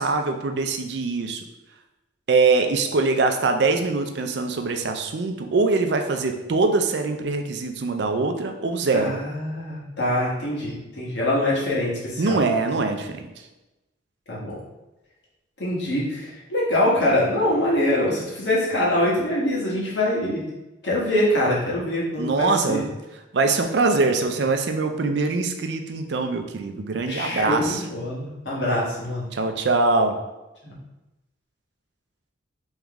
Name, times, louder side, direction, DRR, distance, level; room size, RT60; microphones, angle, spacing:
voice 1, 0.0-1.4 2.3-9.1 12.2-13.3 22.2-22.9 23.3-27.8 29.3-30.2, right 3 dB, 70° right, 6 dB, 0.5 m, -23 dB
voice 2, 8.9-12.4 14.3-14.6 15.6-20.4 20.8-22.8 27.1-29.3 30.6-30.7, left 1 dB, 75° left, -6 dB, 1.3 m, -24 dB
3.7 x 3.1 x 3.5 m, 1.0 s
head